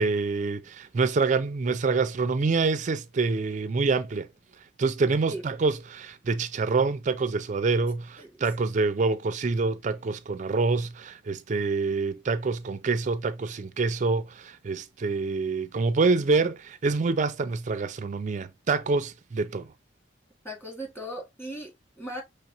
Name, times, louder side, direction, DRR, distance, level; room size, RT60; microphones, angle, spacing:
voice 1, 0.0-4.3 4.8-19.7, right 4 dB, 40° right, 0.4 m, -26 dB
voice 2, 20.4-22.2, equal, 15° left, 1.8 m, -38 dB
5.8 x 3.3 x 2.8 m
head